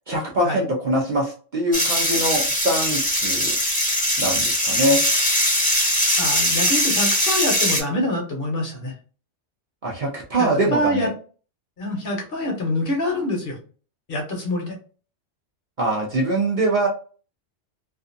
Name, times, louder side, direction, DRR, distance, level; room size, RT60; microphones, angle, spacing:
voice 1, 0.1-3.6 4.2-5.0 9.8-11.1 15.8-16.9, right 1 dB, 50° right, -2 dB, 0.6 m, -23 dB
sound 1, 1.7-7.8, equal, 10° left, 0.7 m, -21 dB
voice 2, 6.0-8.9 10.4-11.1 11.8-13.6 14.1-14.7, left 1 dB, 55° left, 1 dB, 0.9 m, -25 dB
2.5 x 2.4 x 2.5 m, 0.39 s
omnidirectional pair, 1.2 m